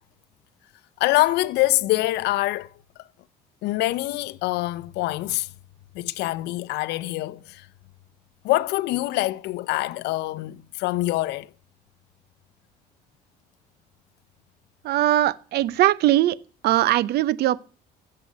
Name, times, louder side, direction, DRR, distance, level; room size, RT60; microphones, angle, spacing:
voice 1, 1.0-2.7 3.6-5.5 5.9-7.7 8.4-11.5, left 18 dB, 85° left, 0.7 m, -25 dB
voice 2, 14.8-16.4 16.6-17.7, right 14 dB, 70° right, 0.7 m, -20 dB
15.0 x 7.6 x 8.4 m
cardioid pair, 100°, 17 cm